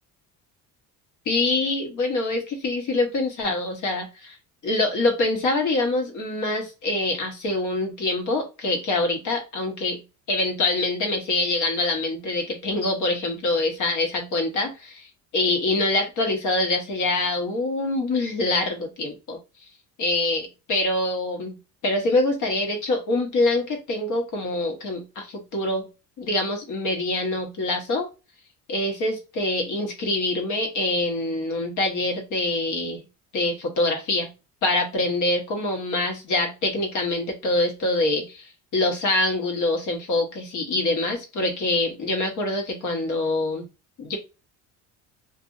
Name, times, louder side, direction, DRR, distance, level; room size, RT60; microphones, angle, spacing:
voice 1, 1.3-4.4 4.6-10.0 10.3-19.4 20.0-21.5 21.8-25.9 26.2-28.1 28.7-33.0 33.3-34.3 34.6-43.7 44.0-44.2, left 2 dB, 55° left, 3 dB, 1.3 m, -25 dB
2.6 x 2.6 x 2.6 m, 0.28 s
cardioid pair, 115°, 37 cm